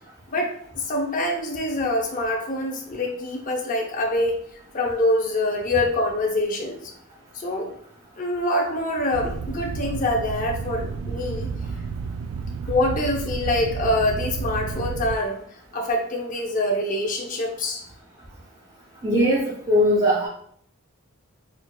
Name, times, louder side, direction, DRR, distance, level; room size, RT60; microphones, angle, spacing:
voice 1, 0.3-4.4 4.7-6.8 7.3-7.7 8.2-11.5 12.7-15.4 15.7-17.8, left 1 dB, 40° left, 1 dB, 0.6 m, -25 dB
sound 1, 9.1-15.2, right 5 dB, 80° right, 0.3 m, -31 dB
voice 2, 19.0-19.4 19.7-20.3, equal, 25° right, -7 dB, 0.6 m, -19 dB
4.4 x 2.4 x 2.3 m, 0.64 s
head